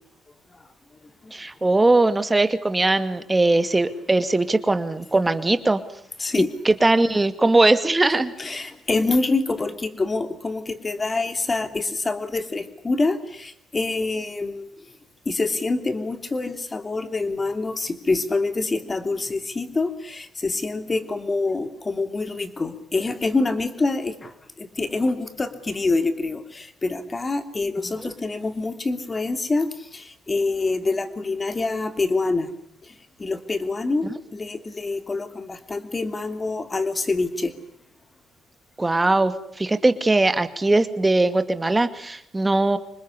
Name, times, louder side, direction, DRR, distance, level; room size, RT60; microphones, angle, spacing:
voice 1, 1.3-5.8 6.6-8.3 38.8-42.8, right 2 dB, 15° right, 11 dB, 2.3 m, -20 dB
voice 2, 6.2-6.5 8.4-14.7 15.2-32.5 32.8-32.9 33.2-34.1 34.3-37.5, left 3 dB, 25° left, 9 dB, 3.0 m, -26 dB
26.5 x 20.5 x 9.9 m, 0.71 s
cardioid pair, 90°, 0 cm